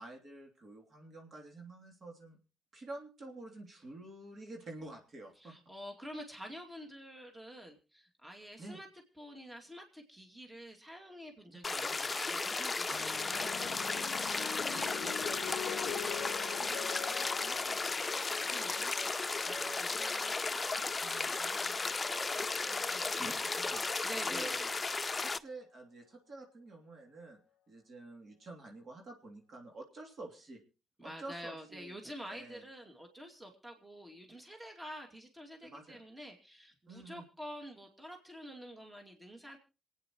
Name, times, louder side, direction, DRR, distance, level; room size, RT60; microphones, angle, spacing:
voice 1, 0.0-2.4 2.7-5.5 8.6-8.8 11.5-11.7 12.9-13.0 14.7-19.1 19.5-24.7 25.2-27.4 27.7-30.6 31.0-32.0 32.3-32.6 35.6-36.0 36.9-37.2, right 2 dB, 50° right, 1 dB, 3.1 m, -49 dB
voice 2, 5.4-8.9 9.2-14.0 18.4-18.8 24.0-24.5 31.0-39.6, equal, 15° right, 2 dB, 2.5 m, -48 dB
sound 1, 11.6-25.4, left 3 dB, 30° left, 0.6 m, -35 dB
sound 2, 12.9-21.5 22.4-22.8, left 12 dB, 75° left, 0.6 m, -45 dB
27.0 x 9.2 x 3.1 m, 0.33 s
hypercardioid pair, 50°, 0 cm